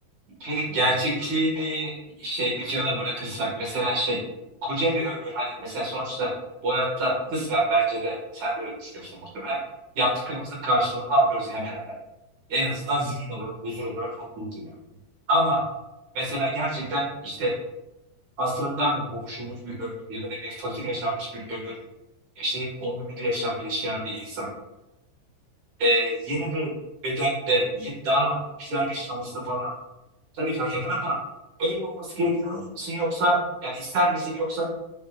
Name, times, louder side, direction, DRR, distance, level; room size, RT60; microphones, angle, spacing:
voice 1, 0.4-4.2 4.6-6.3 6.6-9.6 10.0-11.8 12.5-14.7 15.3-15.6 16.1-17.5 18.4-21.7 22.4-24.5 25.8-26.7 27.0-29.7 30.3-31.2 31.6-34.7, right 1 dB, 50° right, -5 dB, 2.4 m, -27 dB
9.7 x 4.4 x 2.4 m, 0.96 s
omnidirectional pair, 5.3 m